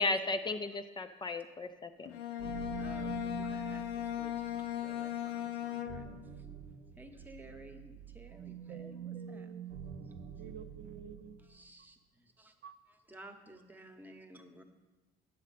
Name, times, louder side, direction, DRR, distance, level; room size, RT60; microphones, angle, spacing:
voice 1, 0.0-2.1, left 3 dB, 25° left, 8 dB, 0.4 m, -34 dB
Bowed string instrument, 2.0-6.3, left 11 dB, 85° left, 0.6 m, -38 dB
sound 1, 2.4-11.6, right 8 dB, 85° right, 1.1 m, -47 dB
voice 2, 2.8-6.5 6.9-9.5 10.0-10.1 11.4-12.6 12.9-14.6, right 1 dB, 10° right, 6 dB, 0.9 m, -55 dB
voice 3, 8.7-9.7 10.4-11.4 12.6-12.7, right 8 dB, 65° right, 9 dB, 0.5 m, -50 dB
10.0 x 7.3 x 4.1 m, 1.2 s
cardioid pair, 110°, 17 cm